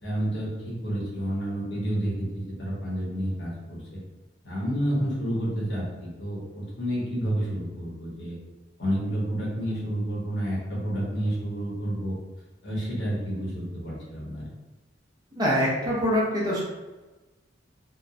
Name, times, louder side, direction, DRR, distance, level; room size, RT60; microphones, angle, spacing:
voice 1, 0.0-4.0 4.4-8.4 8.8-12.1 12.6-14.5, equal, 65° left, -5 dB, 1.0 m, -30 dB
voice 2, 15.4-16.6, equal, 25° right, -6 dB, 0.7 m, -24 dB
2.9 x 2.1 x 2.5 m, 1.2 s
head